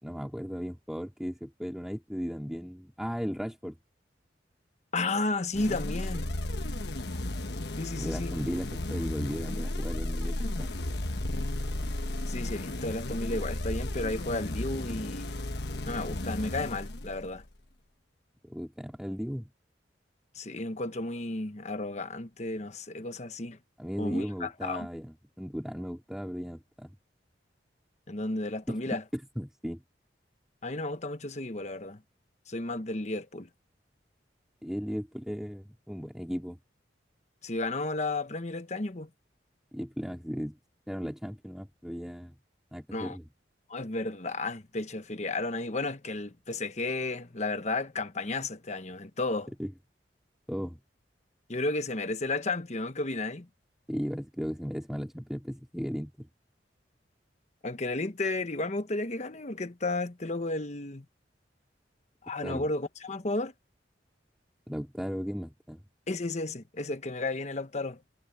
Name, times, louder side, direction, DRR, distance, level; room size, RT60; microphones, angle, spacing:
voice 1, 0.0-3.8 7.9-10.8 18.4-19.5 23.8-27.0 28.7-29.8 34.6-36.6 39.7-40.6 40.9-42.3 42.7-43.2 49.6-49.7 50.5-50.8 53.9-56.3 62.4-62.7 64.7-65.8, equal, 5° right, 3.8 m, -36 dB
voice 2, 4.9-6.3 7.8-8.4 12.3-15.3 15.9-17.4 20.3-23.6 24.0-24.9 28.1-29.0 30.6-32.0 32.5-33.5 37.4-39.1 42.9-43.2 43.7-49.5 51.5-53.5 57.6-61.0 62.2-63.5 66.1-68.0, left 2 dB, 40° left, 1.1 m, -33 dB
sound 1, 5.5-17.5, left 1 dB, 65° left, 1.4 m, -34 dB
head